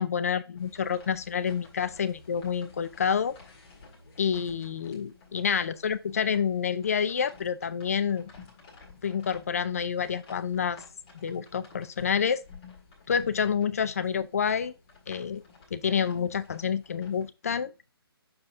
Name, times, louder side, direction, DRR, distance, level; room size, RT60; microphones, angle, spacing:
voice 1, 0.0-3.3 4.2-8.3 9.0-10.8 11.1-12.4 13.1-14.7 15.1-15.4 15.7-17.7, left 7 dB, 35° left, 0.5 m, -28 dB
sound 1, 0.6-17.3, left 4 dB, 20° left, 1.9 m, -53 dB
6.6 x 4.7 x 3.5 m
hypercardioid pair, 170°, 13 cm